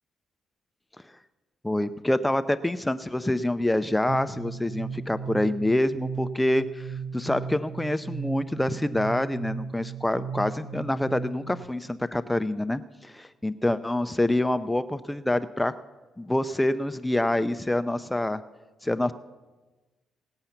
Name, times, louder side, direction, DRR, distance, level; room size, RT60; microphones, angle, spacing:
voice 1, 1.6-15.7 16.2-18.4 18.8-19.1, left 1 dB, 10° left, 12 dB, 0.5 m, -26 dB
sound 1, 4.1-11.6, right 6 dB, 70° right, 1.2 m, -36 dB
18.0 x 7.8 x 5.8 m, 1.2 s
cardioid pair, 90°, 0 cm